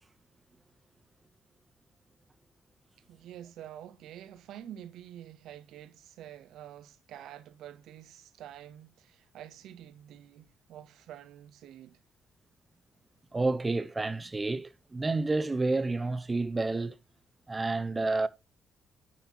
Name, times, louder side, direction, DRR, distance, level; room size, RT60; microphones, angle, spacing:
voice 1, 3.1-12.0, right 11 dB, 80° right, 0.5 m, -48 dB
voice 2, 13.3-17.0 17.5-18.3, right 3 dB, 20° right, 0.6 m, -29 dB
10.0 x 4.2 x 2.7 m
cardioid pair, 90°, 0 cm